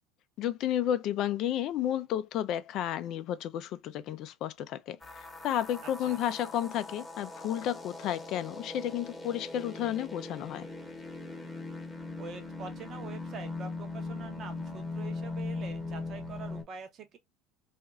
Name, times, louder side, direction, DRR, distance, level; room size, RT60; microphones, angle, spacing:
voice 1, 0.4-10.7, left 11 dB, 55° left, 0.3 m, -32 dB
sound 1, 5.0-16.6, left 3 dB, 10° left, 0.9 m, -40 dB
voice 2, 5.8-6.2 12.2-17.2, right 6 dB, 45° right, 0.7 m, -45 dB
2.9 x 2.4 x 2.3 m
hypercardioid pair, 80°, 0 cm